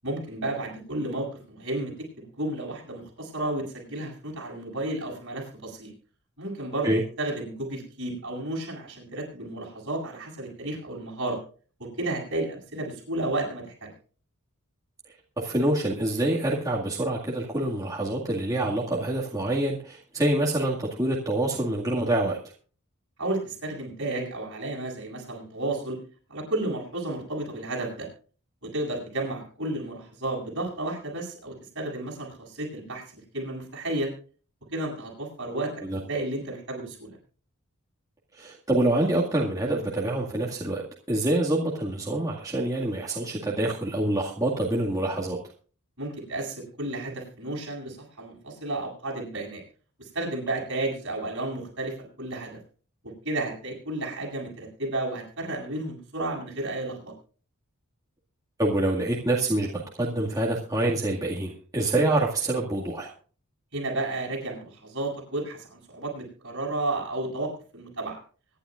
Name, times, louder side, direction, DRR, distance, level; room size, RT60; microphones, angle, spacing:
voice 1, 0.0-5.9 6.4-11.4 11.8-13.9 23.2-26.0 26.3-28.1 28.6-34.1 34.7-37.2 46.0-49.6 50.0-52.6 53.0-57.1 63.7-68.2, right 2 dB, 55° right, -2 dB, 8.0 m, -32 dB
voice 2, 15.4-22.4 35.8-36.0 38.3-40.8 41.1-45.4 58.6-63.1, right 1 dB, 15° right, -4 dB, 2.1 m, -26 dB
24.5 x 11.5 x 2.5 m, 0.40 s
head